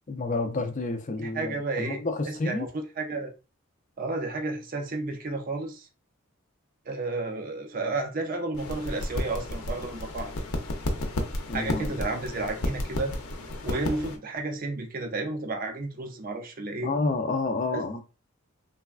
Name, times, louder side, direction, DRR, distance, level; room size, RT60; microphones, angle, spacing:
voice 1, 0.1-2.7 11.5-11.9 16.8-18.0, left 3 dB, 35° left, 0.4 m, -29 dB
voice 2, 1.2-2.7 3.0-3.3 4.0-5.9 6.9-10.3 11.5-13.1 13.6-16.9 17.7-18.0, right 3 dB, 40° right, 0.4 m, -32 dB
sound 1, 8.5-14.2, left 1 dB, 85° left, 0.6 m, -32 dB
3.3 x 2.2 x 2.3 m
head